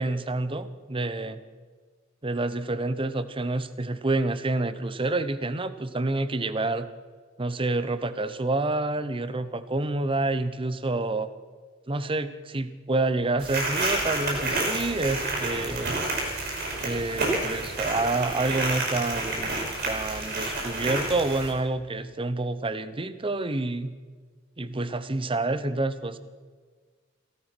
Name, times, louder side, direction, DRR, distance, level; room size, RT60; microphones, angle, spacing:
voice 1, 0.0-1.4 2.2-6.9 7.4-11.3 11.9-16.0 16.8-23.9 24.6-26.2, right 2 dB, 25° right, 13 dB, 0.8 m, -28 dB
sound 1, 13.4-21.5, right 2 dB, 55° right, 5.4 m, -29 dB
16.5 x 14.0 x 6.1 m, 1.5 s
head